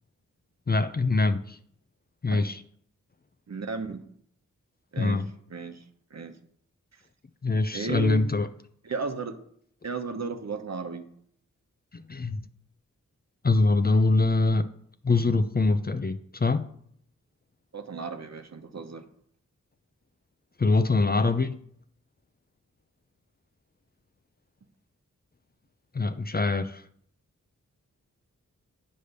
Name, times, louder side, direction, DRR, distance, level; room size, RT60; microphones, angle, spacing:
voice 1, 0.7-1.6 2.2-2.6 5.0-5.3 7.4-8.5 11.9-12.4 13.4-14.6 15.0-16.7 20.6-21.6 25.9-26.8, left 3 dB, 30° left, 10 dB, 0.5 m, -24 dB
voice 2, 3.5-4.0 4.9-5.2 5.5-5.8 6.1-6.3 7.7-8.3 8.8-9.4 9.8-11.1 17.7-19.0, right 4 dB, 55° right, 6 dB, 1.1 m, -34 dB
9.5 x 3.4 x 6.7 m, 0.65 s
cardioid pair, 55°, 32 cm